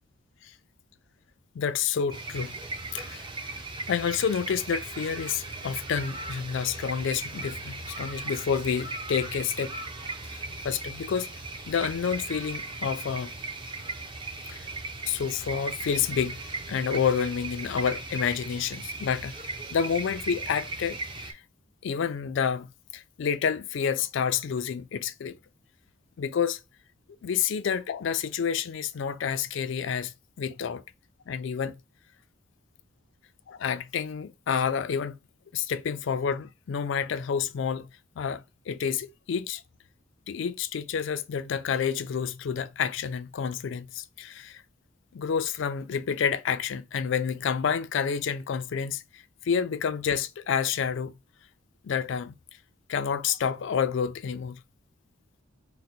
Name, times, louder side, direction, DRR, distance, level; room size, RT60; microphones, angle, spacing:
voice 1, 1.6-2.6 2.9-3.3 3.9-9.7 10.3-11.3 11.7-13.3 14.5-14.7 15.1-21.4 21.8-25.4 26.2-26.6 27.2-30.8 31.3-31.8 33.5-35.2 35.5-37.9 38.2-39.6 40.3-44.6 45.1-51.2 51.8-52.3 52.9-54.6, left 7 dB, 60° left, 0.3 m, -29 dB
sound 1, 2.1-21.3, right 3 dB, 25° right, 0.5 m, -37 dB
3.8 x 2.1 x 4.3 m
head